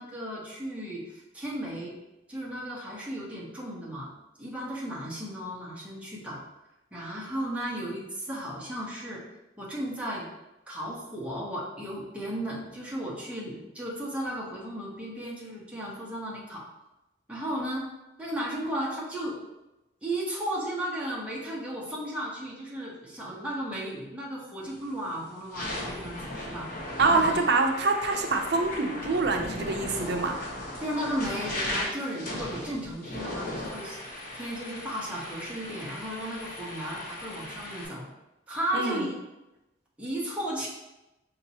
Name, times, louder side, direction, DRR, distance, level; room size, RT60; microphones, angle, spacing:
voice 1, 0.0-2.0 2.3-4.1 4.4-6.4 6.9-9.2 9.6-10.3 10.7-16.6 17.3-17.9 18.2-19.4 20.0-26.7 27.1-27.4 30.8-38.0 38.5-39.2 40.0-40.7, right 1 dB, 5° right, -5 dB, 0.8 m, -35 dB
sound 1, 24.7-24.9 25.4-37.9, left 1 dB, 50° left, 1.0 m, -37 dB
voice 2, 27.0-30.4 38.7-39.1, right 3 dB, 65° right, 3 dB, 0.5 m, -25 dB
5.3 x 2.8 x 2.8 m, 0.98 s
head